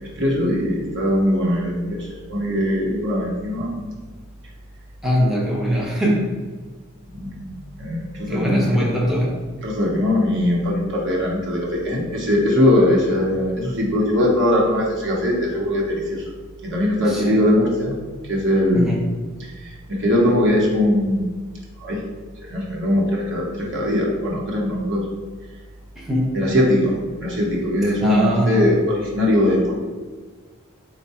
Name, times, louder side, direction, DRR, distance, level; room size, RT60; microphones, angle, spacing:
voice 1, 0.0-3.9 7.1-7.5 7.8-8.9 9.6-16.2 16.6-17.9 18.3-18.9 19.4-21.2 21.8-22.0 22.4-25.0 26.3-29.7, left 1 dB, 55° right, -2 dB, 1.0 m, -20 dB
voice 2, 5.0-6.4 8.3-9.4 17.0-17.4 18.7-19.0 26.0-26.3 28.0-28.7, equal, ahead, -5 dB, 0.6 m, -22 dB
4.5 x 2.3 x 4.2 m, 1.4 s
head